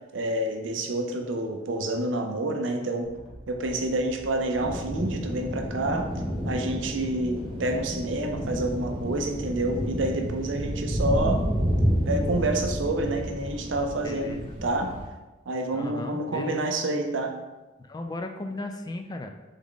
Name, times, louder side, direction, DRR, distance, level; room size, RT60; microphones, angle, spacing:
voice 1, 0.1-3.1 3.5-6.1 6.4-11.4 12.1-14.9 15.5-17.3, right 2 dB, 85° right, 4 dB, 0.6 m, -28 dB
sound 1, 3.0-10.1, right 1 dB, 5° right, 1.3 m, -46 dB
sound 2, 4.6-15.1, equal, 30° right, 0.9 m, -30 dB
sound 3, 9.8-12.3, right 3 dB, 75° left, 1.3 m, -43 dB
voice 2, 12.5-13.1 14.0-14.6 15.7-16.8 17.9-19.3, left 2 dB, 20° left, 5 dB, 0.3 m, -36 dB
3.6 x 3.5 x 3.7 m, 1.1 s
head